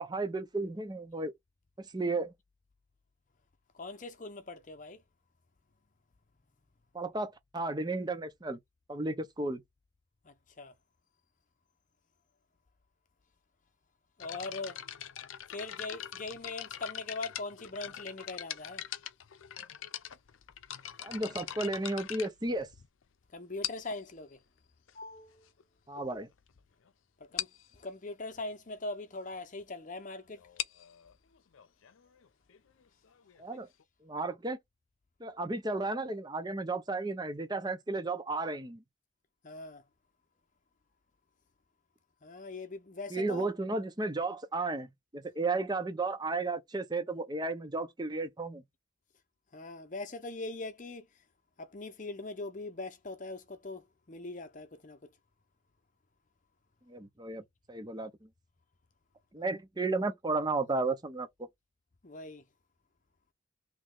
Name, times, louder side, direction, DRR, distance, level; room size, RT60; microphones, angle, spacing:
voice 1, 0.0-1.3 1.8-2.3 6.9-8.6 8.9-9.6 21.0-22.7 25.9-26.3 33.4-33.7 34.0-34.6 35.2-38.8 43.1-44.9 45.1-48.6 56.9-58.1 59.3-61.3, right 3 dB, 20° right, 0.6 m, -33 dB
voice 2, 3.7-5.0 10.2-10.7 14.2-14.8 15.5-18.9 23.3-24.4 24.9-25.5 27.2-30.4 39.4-39.8 42.2-43.5 49.5-51.2 51.6-55.1 62.0-62.5, left 2 dB, 40° left, 0.7 m, -41 dB
sound 1, 14.2-23.0 23.6-24.1 24.9-25.0 25.6-25.7 26.0-26.2 26.5-26.6 26.9-27.0 27.4-27.7 30.3-33.8, left 11 dB, 80° left, 0.5 m, -42 dB
3.2 x 2.9 x 3.7 m
head